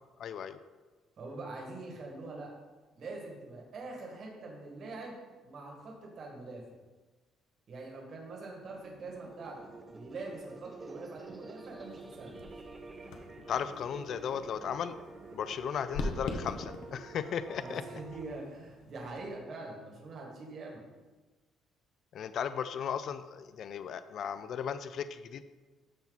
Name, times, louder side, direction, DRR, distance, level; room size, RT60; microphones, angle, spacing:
voice 1, 0.2-0.6 13.5-15.0 15.3-17.8 22.1-25.4, left 8 dB, 50° left, 12 dB, 0.4 m, -36 dB
voice 2, 1.2-2.5 2.9-5.2 5.4-6.6 7.7-12.4 17.6-20.8, right 3 dB, 45° right, -1 dB, 1.9 m, -44 dB
sound 1, 8.6-18.2, right 3 dB, 20° right, 0.5 m, -49 dB
sound 2, 11.6-19.4, left 3 dB, 90° left, 1.0 m, -44 dB
13.0 x 4.4 x 4.1 m, 1.3 s
cardioid pair, 155°, 0 cm